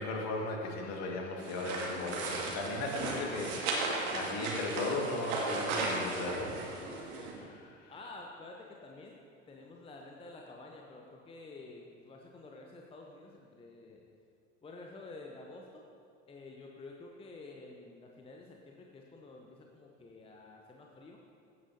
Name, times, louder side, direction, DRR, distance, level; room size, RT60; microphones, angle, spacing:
voice 1, 0.0-6.5 7.3-7.9, left 2 dB, 40° left, 0 dB, 2.0 m, -37 dB
sound 1, 1.4-7.3, right 3 dB, 50° right, 2.2 m, -36 dB
voice 2, 6.8-7.5 7.9-14.0 14.6-15.9 16.3-21.2, left 2 dB, 15° left, 0 dB, 0.8 m, -50 dB
16.0 x 9.3 x 2.8 m, 2.4 s
figure-of-eight pair, 75°, 39 cm